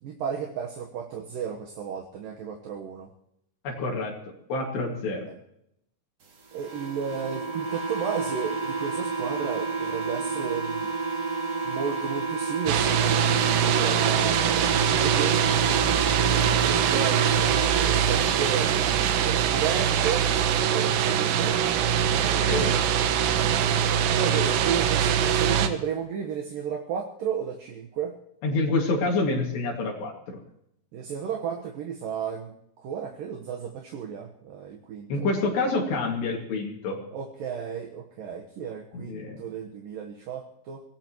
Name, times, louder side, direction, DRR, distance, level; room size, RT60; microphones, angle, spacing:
voice 1, 0.0-3.1 5.2-5.3 6.5-10.9 11.6-16.0 16.6-18.9 19.2-20.3 20.6-21.6 22.2-23.1 24.1-28.2 30.9-35.2 37.1-40.8, right 7 dB, 65° right, 3 dB, 2.6 m, -33 dB
voice 2, 3.6-4.1 4.5-5.3 22.4-22.8 28.4-30.4 35.1-37.0 38.9-39.4, left 3 dB, 75° left, 0 dB, 4.5 m, -27 dB
sound 1, 6.6-18.6, right 4 dB, 40° right, 3.3 m, -30 dB
sound 2, 12.7-25.7, right 8 dB, 90° right, 3.4 m, -23 dB
24.5 x 18.0 x 3.1 m, 0.77 s
omnidirectional pair, 4.9 m